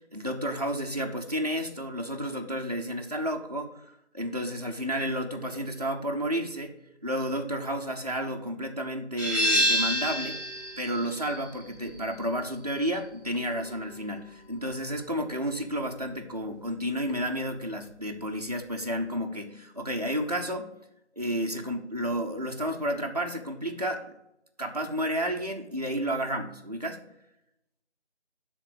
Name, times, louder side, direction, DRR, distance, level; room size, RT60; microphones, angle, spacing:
voice 1, 0.0-3.8 4.1-6.7 7.0-10.4 10.8-20.7 21.2-24.1 24.6-27.0, equal, 35° right, 1 dB, 0.8 m, -31 dB
sound 1, 9.2-14.6, equal, 15° left, 3.6 m, -30 dB
11.0 x 4.0 x 6.2 m, 0.84 s
figure-of-eight pair, 175°, 35 cm